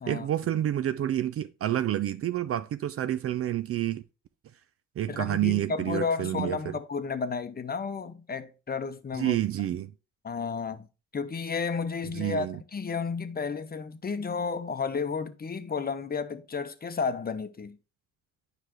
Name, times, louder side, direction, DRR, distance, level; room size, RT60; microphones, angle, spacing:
voice 1, 0.1-4.0 5.0-6.8 9.1-9.9 12.1-12.6, right 12 dB, 40° right, 0.5 m, -29 dB
voice 2, 5.1-9.4 10.2-10.9 11.1-17.8, left 5 dB, 25° left, 0.8 m, -32 dB
9.3 x 5.0 x 3.1 m
hypercardioid pair, 55°, 35 cm